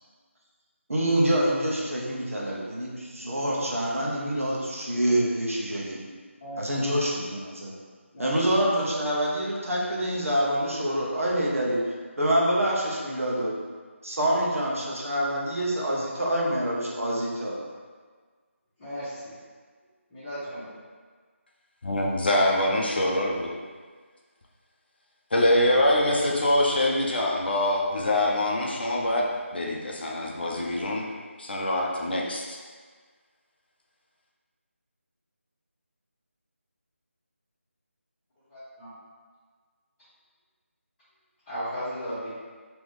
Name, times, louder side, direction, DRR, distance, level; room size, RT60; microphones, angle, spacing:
voice 1, 0.9-6.0 6.6-7.7 8.2-11.8 12.2-13.5 14.0-17.6, right 1 dB, 85° right, -4 dB, 1.0 m, -26 dB
voice 2, 18.8-19.3 20.1-20.7 38.5-38.9 41.5-42.3, equal, 15° left, -18 dB, 1.1 m, -35 dB
voice 3, 21.8-23.5 25.3-29.3 29.5-31.1 31.4-32.6, left 1 dB, 45° left, -2 dB, 0.5 m, -24 dB
3.7 x 2.9 x 3.2 m, 1.5 s
figure-of-eight pair, 165°, 7 cm